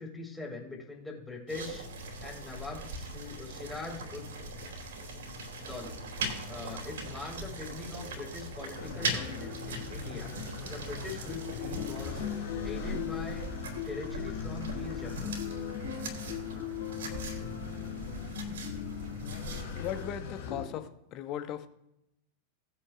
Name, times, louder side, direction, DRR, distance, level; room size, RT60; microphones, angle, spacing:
voice 1, 0.0-1.9 2.2-4.3 5.6-5.9 6.5-10.3 10.6-12.2 12.6-13.5 13.8-15.4, left 3 dB, 10° left, -2 dB, 4.2 m, -42 dB
sound 1, 1.5-20.1, right 2 dB, 60° right, 2.9 m, -40 dB
sound 2, 8.7-20.7, left 8 dB, 60° left, 2.9 m, -39 dB
voice 2, 19.8-21.7, left 11 dB, 35° left, 10 dB, 1.0 m, -38 dB
18.5 x 8.8 x 2.5 m, 0.81 s
figure-of-eight pair, 90°, 0 cm